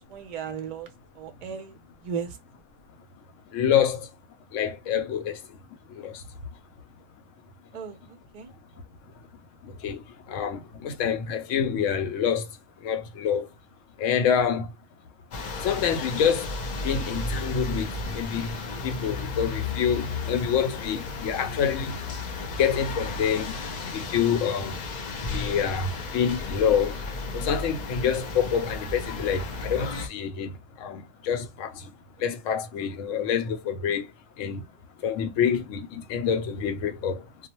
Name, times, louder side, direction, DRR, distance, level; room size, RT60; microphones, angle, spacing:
voice 1, 0.0-2.4 7.7-8.5, right 7 dB, 55° right, 0.4 m, -36 dB
voice 2, 3.5-4.0 4.5-5.4 6.0-6.2 9.8-10.0 10.3-12.5 12.8-13.5 14.0-14.7 15.6-16.5 16.8-18.5 18.8-22.0 22.4-23.5 23.9-24.8 25.3-27.0 27.3-30.5 30.8-31.9 32.2-34.1 34.4-34.6 35.0-37.2, left 7 dB, 85° left, 0.9 m, -26 dB
sound 1, 15.3-30.1, left 3 dB, 50° left, 0.6 m, -34 dB
2.3 x 2.0 x 2.9 m
omnidirectional pair, 1.3 m